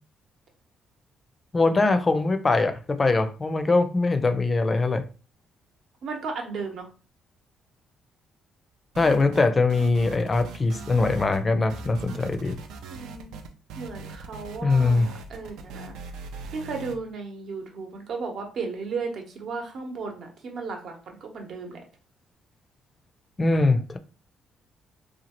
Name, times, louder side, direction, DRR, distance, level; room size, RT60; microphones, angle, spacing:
voice 1, 1.5-5.0 9.0-12.6 14.6-15.1 23.4-24.0, left 3 dB, 30° left, 0.4 m, -22 dB
voice 2, 6.0-6.9 12.9-13.3 13.8-16.0 16.5-21.8, right 4 dB, 65° right, 0.9 m, -35 dB
sound 1, 8.9-9.4 9.7-11.4 11.7-16.9, right 4 dB, 80° right, 0.4 m, -40 dB
2.9 x 2.3 x 2.9 m
supercardioid pair, 70°, 0 cm